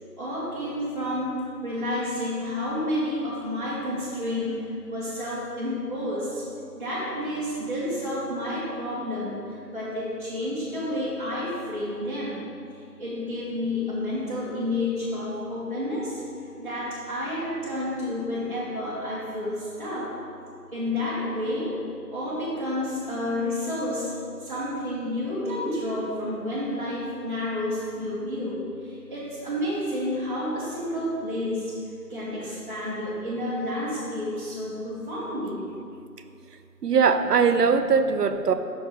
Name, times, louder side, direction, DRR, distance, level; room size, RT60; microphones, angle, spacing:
voice 1, 0.2-1.3 1.6-4.6 4.9-6.4 6.7-9.4 9.7-12.5 13.0-16.1 16.6-20.1 20.7-21.7 22.1-24.1 24.4-31.7 32.1-35.6 37.7-37.8, left 1 dB, 30° right, -11 dB, 0.9 m, -30 dB
voice 2, 36.8-38.5, right 5 dB, 75° right, 9 dB, 0.5 m, -20 dB
5.8 x 3.9 x 5.3 m, 2.5 s
figure-of-eight pair, 160°, 49 cm